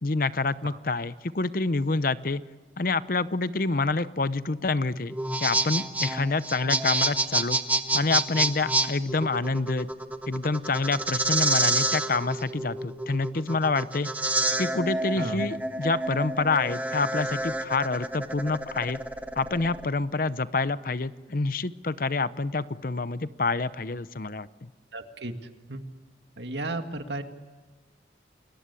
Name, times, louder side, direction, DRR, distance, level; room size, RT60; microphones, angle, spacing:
voice 1, 0.0-2.4 2.8-7.6 7.9-9.9 10.3-14.1 14.6-19.0 19.4-24.7, left 3 dB, 50° left, 15 dB, 0.8 m, -27 dB
sound 1, 5.1-19.9, right 2 dB, 10° right, 1.3 m, -28 dB
voice 2, 24.9-25.3 25.7-25.8 26.4-27.2, right 2 dB, 75° right, 6 dB, 2.1 m, -34 dB
30.0 x 22.0 x 8.4 m, 1.3 s
head